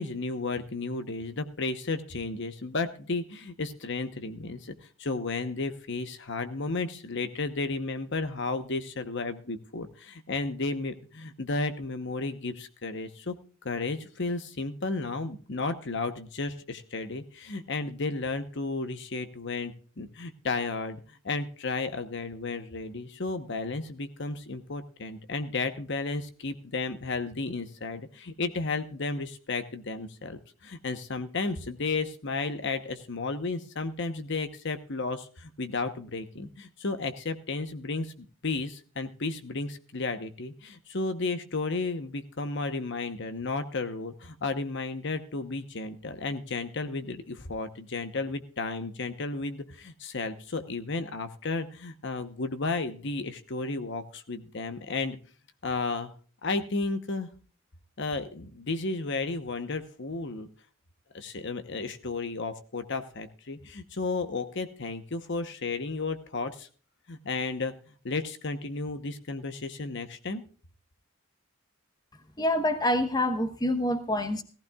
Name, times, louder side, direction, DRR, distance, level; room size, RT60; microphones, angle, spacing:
voice 1, 0.0-13.3 13.6-55.2 55.6-56.1 56.4-57.3 58.0-60.5 61.1-66.7 67.1-67.7 68.0-70.4, left 3 dB, 55° left, 9 dB, 1.0 m, -33 dB
voice 2, 72.4-74.4, left 1 dB, 20° left, 8 dB, 1.1 m, -26 dB
18.0 x 15.0 x 2.4 m, 0.39 s
head